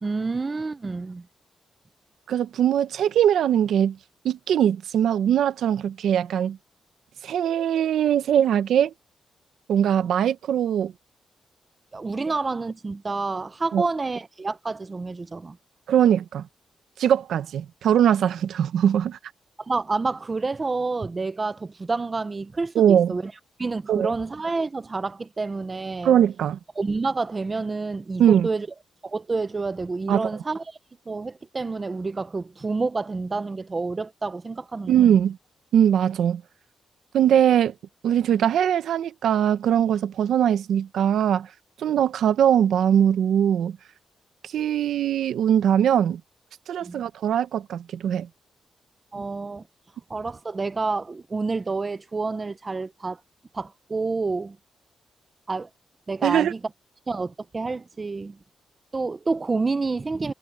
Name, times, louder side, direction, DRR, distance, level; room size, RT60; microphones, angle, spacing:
voice 1, 0.0-1.3 11.9-15.6 19.6-23.3 23.6-26.1 26.8-28.7 29.0-30.8 31.1-34.9 46.8-47.0 49.1-49.6 50.1-53.2 53.5-54.6 55.5-55.7 56.1-56.6 57.1-58.4 58.9-60.3, right 3 dB, 25° right, 0.6 m, -28 dB
voice 2, 2.3-4.0 4.2-6.6 7.2-8.9 9.7-10.9 13.7-13.8 15.9-16.5 17.0-19.2 22.7-23.2 23.9-24.1 26.0-26.6 28.2-28.5 30.1-30.3 34.9-35.4 35.7-36.4 37.1-37.7 38.0-41.5 41.8-43.8 44.4-46.2 46.7-48.3 56.2-56.5, right 9 dB, 90° right, 0.9 m, -21 dB
wide cardioid pair, 165°, 0 cm